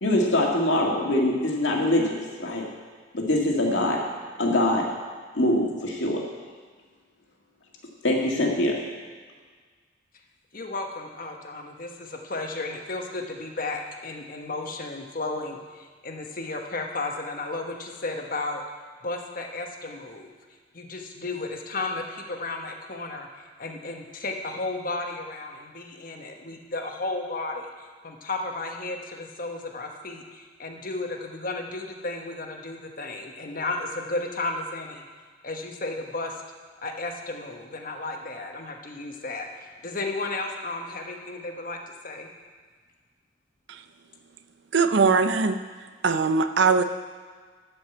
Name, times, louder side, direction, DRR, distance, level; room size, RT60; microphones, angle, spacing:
voice 1, 0.0-2.7 3.1-4.0 4.4-4.9 5.4-6.2 8.0-8.8, left 1 dB, 70° left, -1 dB, 2.0 m, -23 dB
voice 2, 10.5-18.6 19.0-20.3 20.7-35.0 35.4-36.3 36.8-39.5 39.8-41.8 42.0-42.3, left 2 dB, 45° left, 2 dB, 1.2 m, -33 dB
voice 3, 44.7-45.6 46.0-46.8, right 4 dB, 60° right, 9 dB, 0.6 m, -21 dB
12.5 x 5.3 x 7.9 m, 1.5 s
head